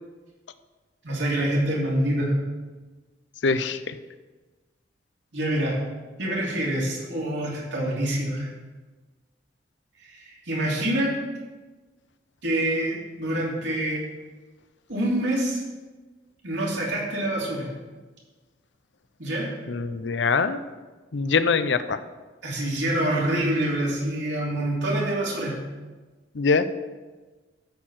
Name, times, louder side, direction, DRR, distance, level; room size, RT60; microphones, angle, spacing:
voice 1, 1.0-2.3 5.3-5.8 6.2-8.5 10.0-11.2 12.4-14.0 14.9-15.6 16.4-17.7 19.2-19.5 22.4-25.6, right 1 dB, 90° right, -4 dB, 3.4 m, -26 dB
voice 2, 3.4-3.9 19.7-20.6 21.1-22.0 26.3-26.7, left 4 dB, 85° left, 12 dB, 0.6 m, -23 dB
13.0 x 4.6 x 7.5 m, 1.3 s
head